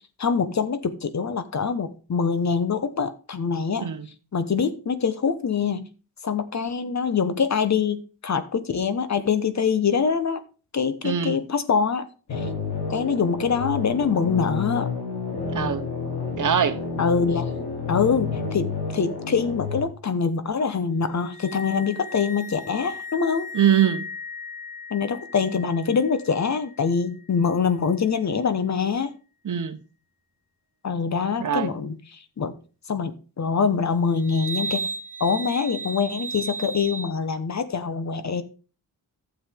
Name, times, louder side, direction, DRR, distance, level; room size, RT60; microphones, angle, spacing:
voice 1, 0.2-3.9 4.3-5.8 6.2-10.4 10.7-12.5 12.9-14.9 17.0-17.5 17.9-23.5 24.9-29.1 30.8-32.5 32.9-34.9 35.2-38.4, left 6 dB, 45° left, 1.1 m, -24 dB
voice 2, 11.0-11.4 15.5-15.8 16.4-16.8 23.5-24.0 29.4-29.8 31.4-31.7, right 9 dB, 50° right, 1.0 m, -22 dB
sound 1, 12.3-19.8, left 4 dB, 80° left, 3.1 m, -30 dB
sound 2, 21.2-27.4 34.2-37.1, right 1 dB, 35° right, 1.6 m, -36 dB
12.0 x 7.3 x 3.6 m
cardioid pair, 80°, 39 cm